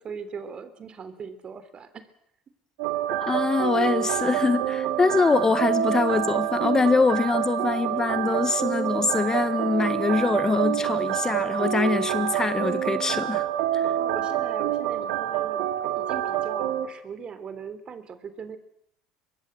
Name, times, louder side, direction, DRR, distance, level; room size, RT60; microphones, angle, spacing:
voice 1, 0.0-2.1 13.8-15.7 16.0-18.6, right 6 dB, 40° right, 12 dB, 3.4 m, -40 dB
sound 1, 2.8-16.9, right 11 dB, 75° right, 2.3 m, -27 dB
voice 2, 3.2-13.5 13.7-13.9, left 4 dB, 25° left, 13 dB, 1.4 m, -24 dB
24.5 x 21.0 x 7.8 m, 0.73 s
hypercardioid pair, 70°, 3 cm